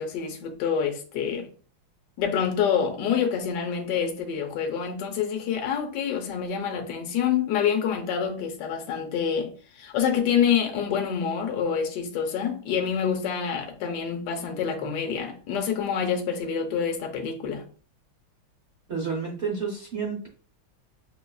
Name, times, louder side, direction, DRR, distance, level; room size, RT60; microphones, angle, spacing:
voice 1, 0.0-1.5 2.2-17.6, left 7 dB, 70° left, 1.1 m, -27 dB
voice 2, 18.9-20.3, right 5 dB, 75° right, 0.6 m, -30 dB
6.3 x 2.3 x 2.2 m
omnidirectional pair, 2.3 m